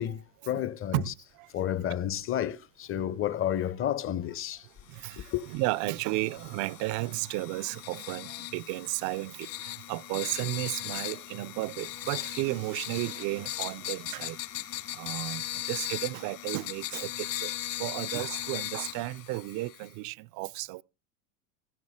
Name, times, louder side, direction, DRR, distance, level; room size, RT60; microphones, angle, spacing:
voice 1, 0.0-1.0 1.5-4.7 5.2-5.5, left 11 dB, 30° left, 0.9 m, -31 dB
voice 2, 0.9-1.5 3.0-3.1 4.9-14.4 14.9-20.8, right 20 dB, 45° right, 0.5 m, -34 dB
sound 1, 5.0-19.9, left 14 dB, 50° left, 2.1 m, -38 dB
15.5 x 11.0 x 3.7 m
hypercardioid pair, 90°, 43 cm